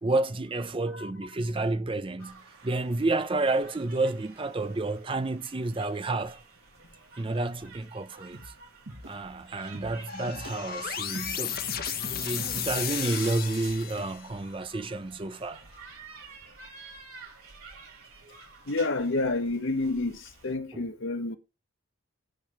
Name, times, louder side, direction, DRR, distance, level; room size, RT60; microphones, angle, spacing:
voice 1, 0.0-2.4 2.6-6.4 7.2-8.4 9.1-11.6 12.2-15.6 18.2-18.4 20.7-20.9, right 2 dB, 25° right, 0.4 m, -30 dB
sound 1, 2.2-20.5, right 4 dB, 85° right, 5.7 m, -51 dB
sound 2, 8.3-8.6 8.9-9.1 9.7-10.0 10.3-10.9 11.1-14.0, right 2 dB, 65° right, 1.3 m, -43 dB
sound 3, 10.1-14.4, left 9 dB, 45° left, 0.8 m, -34 dB
voice 2, 18.7-20.1 20.4-21.4, left 2 dB, 60° left, 1.1 m, -29 dB
10.0 x 3.4 x 6.7 m
head